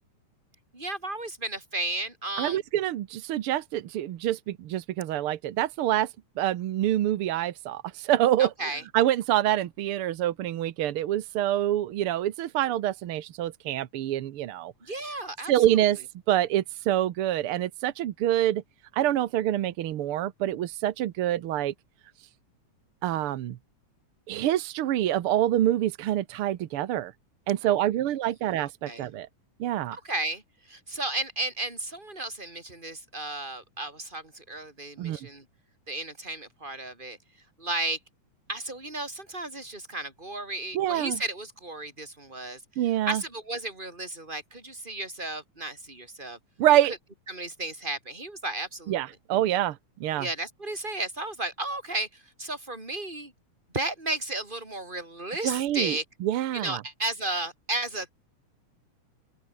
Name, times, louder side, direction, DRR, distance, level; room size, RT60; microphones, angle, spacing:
voice 1, 0.7-2.6 8.4-8.8 14.8-15.5 27.6-27.8 28.8-29.1 30.0-30.4 30.7-35.4 35.9-37.2 37.6-38.0 38.5-42.6 43.1-46.4 47.3-49.0 50.2-53.3 53.7-56.0 56.5-58.1, right 2 dB, 15° right, 5.8 m, -33 dB
voice 2, 2.4-6.1 6.4-14.7 15.5-16.0 16.3-18.6 18.9-21.7 23.0-23.6 24.3-27.1 27.5-29.3 29.6-30.0 35.0-35.2 40.7-41.2 42.8-43.2 46.6-46.9 48.9-50.3 55.4-56.8, right 12 dB, 70° right, 1.4 m, -26 dB
open air
omnidirectional pair, 3.6 m